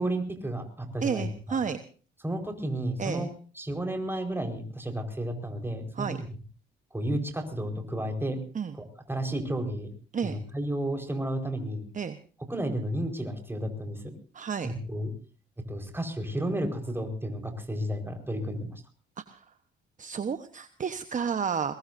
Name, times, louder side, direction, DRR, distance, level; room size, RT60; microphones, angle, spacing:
voice 1, 0.0-1.6 2.2-3.3 3.6-6.1 6.9-8.4 8.8-9.9 10.2-11.9 12.5-14.0 14.6-15.1 15.7-18.8, right 1 dB, 10° right, 5 dB, 4.7 m, -32 dB
voice 2, 1.0-1.8 3.0-3.3 5.9-6.2 8.5-8.7 10.1-10.4 11.9-12.2 14.3-14.7 19.3-19.4 20.0-21.7, right 6 dB, 40° right, 9 dB, 1.1 m, -31 dB
22.5 x 21.0 x 2.7 m, 0.41 s
cardioid pair, 90°, 20 cm